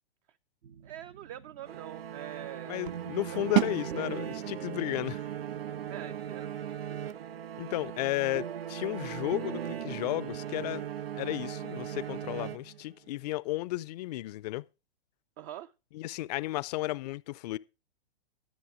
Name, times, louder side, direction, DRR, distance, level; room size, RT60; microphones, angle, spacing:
sound 1, 0.6-10.9, right 9 dB, 70° right, 1.3 m, -44 dB
voice 1, 0.8-2.9 3.2-3.8 5.9-7.2 15.4-15.7, right 12 dB, 35° right, 0.6 m, -45 dB
sound 2, 1.7-13.1, right 9 dB, 90° right, 0.9 m, -39 dB
voice 2, 2.7-5.2 7.6-10.8 11.2-14.6 15.9-17.6, left 18 dB, 45° left, 0.6 m, -33 dB
sound 3, 3.6-9.3, right 16 dB, 50° right, 2.0 m, -36 dB
13.5 x 7.7 x 4.9 m
hypercardioid pair, 140°, 29 cm